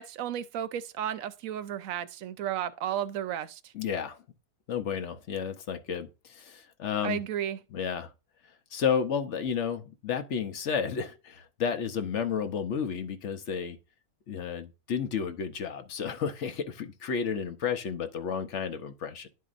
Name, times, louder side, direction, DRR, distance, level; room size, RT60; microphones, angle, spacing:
voice 1, 0.0-3.7 7.0-7.6, right 10 dB, 70° right, 0.9 m, -33 dB
voice 2, 3.7-4.2 4.7-7.2 7.7-8.1 8.7-13.8 14.3-19.3, left 7 dB, 60° left, 1.0 m, -32 dB
11.0 x 4.7 x 2.5 m
omnidirectional pair, 1.5 m